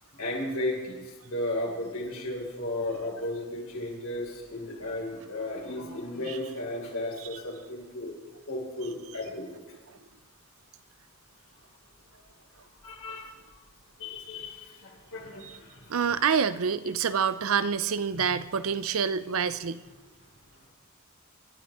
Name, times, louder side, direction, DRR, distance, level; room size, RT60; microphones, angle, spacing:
voice 1, 0.2-8.1 8.5-9.5 12.1-12.2 12.8-13.5 14.0-16.0 18.1-18.3 20.5-20.6, left 1 dB, 80° left, -3 dB, 5.3 m, -35 dB
voice 2, 15.9-19.8, right 6 dB, 75° right, 14 dB, 0.6 m, -27 dB
27.5 x 12.5 x 3.6 m, 1.2 s
head